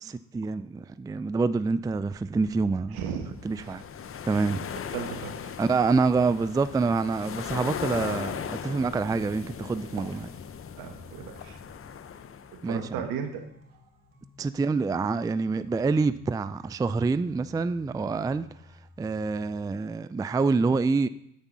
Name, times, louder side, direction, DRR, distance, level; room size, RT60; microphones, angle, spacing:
voice 1, 0.0-3.0 3.4-3.8 4.3-4.6 5.6-10.3 12.6-13.0 14.4-18.5 19.0-21.1, right 4 dB, 10° right, 0.4 m, -26 dB
sound 1, 1.8-15.0, left 4 dB, 20° left, 1.4 m, -52 dB
voice 2, 2.9-3.7 4.9-5.5 10.8-11.6 12.6-13.4, right 7 dB, 70° right, 1.5 m, -35 dB
sound 2, 3.4-12.7, left 8 dB, 40° left, 0.7 m, -38 dB
sound 3, 3.6-19.6, left 2 dB, 35° right, 3.3 m, -56 dB
9.6 x 8.2 x 4.0 m
hypercardioid pair, 50°, 35 cm